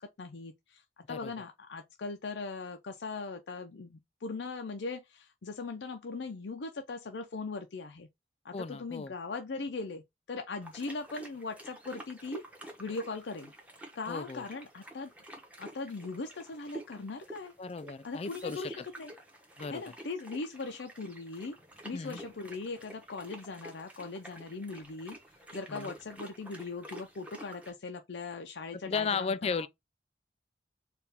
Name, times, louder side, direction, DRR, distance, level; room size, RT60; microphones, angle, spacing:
voice 1, 0.0-8.1 8.4-10.0 10.3-12.4 12.8-13.5 13.9-15.1 15.6-17.5 18.0-19.1 19.7-21.6 21.8-25.2 25.5-29.7, left 3 dB, 80° left, 0.6 m, -40 dB
voice 2, 8.5-9.1 14.1-14.4 17.6-18.9 19.6-19.8 21.9-22.2 25.7-25.9 28.7-29.7, left 5 dB, 35° left, 0.3 m, -35 dB
sound 1, 10.6-27.7, right 1 dB, 10° right, 1.0 m, -50 dB
4.5 x 2.5 x 3.4 m
head